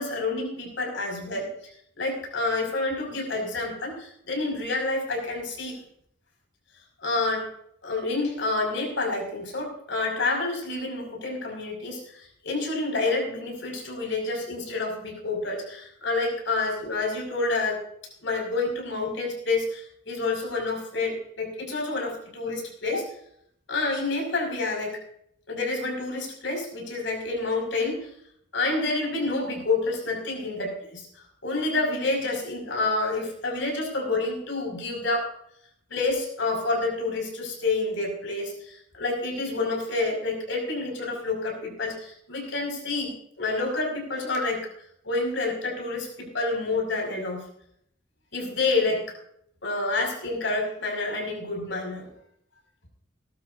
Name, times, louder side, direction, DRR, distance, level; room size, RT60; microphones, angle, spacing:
voice 1, 0.0-1.5 2.0-5.8 7.0-7.5 7.8-17.8 18.2-23.1 23.7-25.0 25.5-28.1 28.5-31.1 31.4-35.3 35.9-44.7 45.0-47.4 48.3-49.1 49.6-52.1, left 3 dB, 70° left, 1 dB, 5.9 m, -28 dB
19.5 x 12.5 x 2.7 m, 0.68 s
head